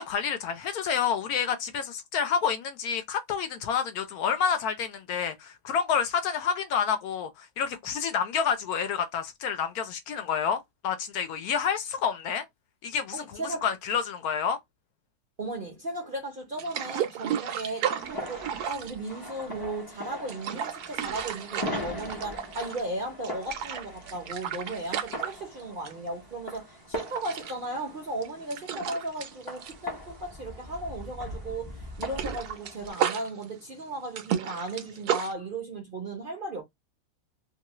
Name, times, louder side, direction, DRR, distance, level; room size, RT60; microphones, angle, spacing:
voice 1, 0.0-12.4 12.8-14.6, left 7 dB, 70° left, 1.0 m, -29 dB
voice 2, 13.1-13.7 15.4-36.6, right 2 dB, 45° right, 0.7 m, -36 dB
sound 1, 16.6-19.6 20.1-23.0 23.2-26.1 26.4-26.6 27.0-30.8 31.0-31.2 31.5-35.3, right 9 dB, 75° right, 1.1 m, -33 dB
sound 2, 18.0-32.9, left 1 dB, 25° left, 0.5 m, -41 dB
2.9 x 2.3 x 2.9 m
omnidirectional pair, 1.8 m